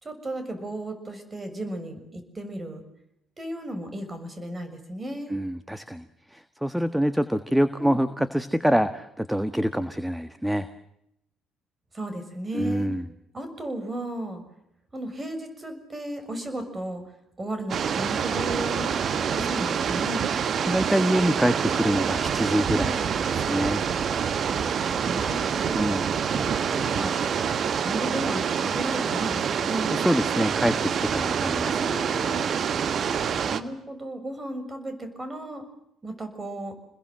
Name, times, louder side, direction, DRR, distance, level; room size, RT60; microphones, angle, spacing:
voice 1, 0.0-2.8 3.4-5.4 7.8-8.0 11.9-12.9 13.3-14.4 14.9-17.0 17.4-18.9 19.3-20.3 25.0-27.3 27.8-30.0 31.8-32.4 33.5-35.6 36.0-36.7, right 1 dB, 25° right, 8 dB, 6.6 m, -34 dB
voice 2, 5.3-10.7 12.5-13.1 20.6-23.8 25.7-26.1 29.9-31.8, equal, 5° right, 11 dB, 1.5 m, -25 dB
sound 1, 17.7-33.6, right 7 dB, 50° right, 1.5 m, -26 dB
28.0 x 21.5 x 7.8 m, 0.80 s
hypercardioid pair, 50°, 0 cm